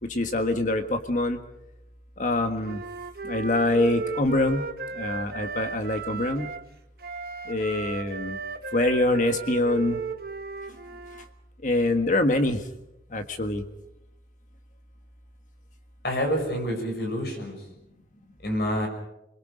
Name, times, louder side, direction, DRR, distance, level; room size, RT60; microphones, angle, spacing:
voice 1, 0.0-1.4 2.2-2.8 3.2-4.6 4.9-6.5 7.5-8.4 8.7-10.0 11.6-12.6 13.1-13.6, left 2 dB, 45° left, 6 dB, 1.6 m, -25 dB
Wind instrument woodwind instrument, 2.6-6.7 7.0-11.2, right 4 dB, 60° right, 1.2 m, -35 dB
voice 2, 16.0-17.6 18.4-18.9, equal, 65° left, 3 dB, 6.3 m, -27 dB
30.0 x 22.0 x 5.1 m, 0.83 s
head